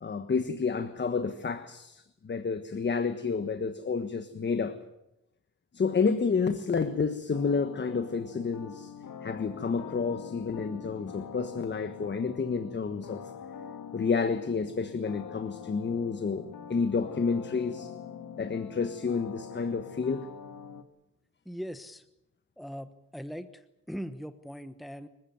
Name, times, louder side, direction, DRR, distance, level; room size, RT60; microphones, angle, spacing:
voice 1, 0.0-4.8 5.7-8.9 9.2-13.2 13.9-17.9 18.4-20.3, left 5 dB, 35° left, 1.4 m, -30 dB
sound 1, 7.3-20.8, left 8 dB, 85° left, 2.0 m, -44 dB
voice 2, 21.4-22.0 22.6-25.1, equal, ahead, 1.0 m, -40 dB
26.0 x 15.5 x 9.4 m
cardioid pair, 120°, 30 cm